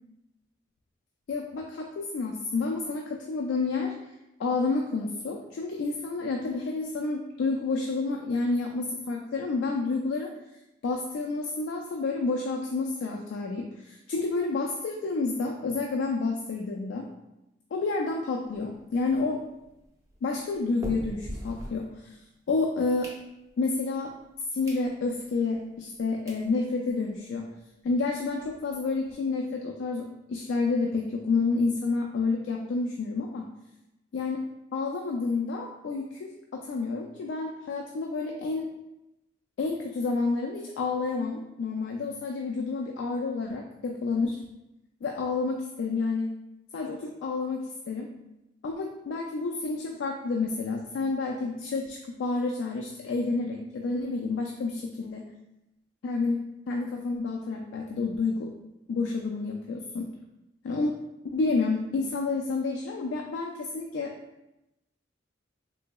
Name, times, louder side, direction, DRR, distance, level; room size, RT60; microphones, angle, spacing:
voice 1, 1.3-3.9 4.4-10.3 10.8-17.1 17.7-19.4 20.2-22.1 22.5-23.1 23.6-24.1 24.5-27.5 27.8-33.5 34.1-34.4 34.7-38.7 39.6-44.4 45.0-46.3 46.7-48.1 48.6-55.2 56.0-58.5 58.9-60.1 60.6-61.0 61.3-64.1, left 3 dB, 85° left, 1 dB, 0.3 m, -29 dB
sound 1, 18.4-22.4 22.8-23.7 24.2-24.3 24.6-24.9 25.3-25.4 26.0-26.1 26.3-26.5 26.9-27.0 27.2-27.3 27.6-27.7 28.0-29.1, equal, 20° right, 0.5 m, -43 dB
3.8 x 2.7 x 2.2 m, 0.92 s
head